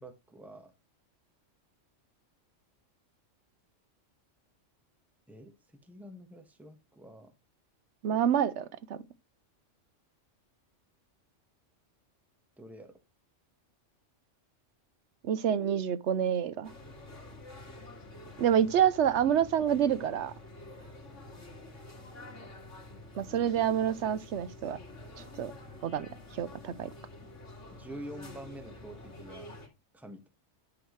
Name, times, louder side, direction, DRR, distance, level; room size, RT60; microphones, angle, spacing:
voice 1, 0.0-0.7 5.3-5.5 5.8-7.3 12.6-12.9 27.7-29.5 29.9-30.3, right 1 dB, ahead, 1.3 m, -47 dB
voice 2, 8.0-9.0 15.2-16.7 18.4-20.3 23.2-24.8 25.4-25.5 25.8-26.9, right 9 dB, 70° right, 0.9 m, -28 dB
sound 1, 16.6-29.7, left 2 dB, 75° left, 2.5 m, -48 dB
11.0 x 6.1 x 3.1 m
omnidirectional pair, 1.3 m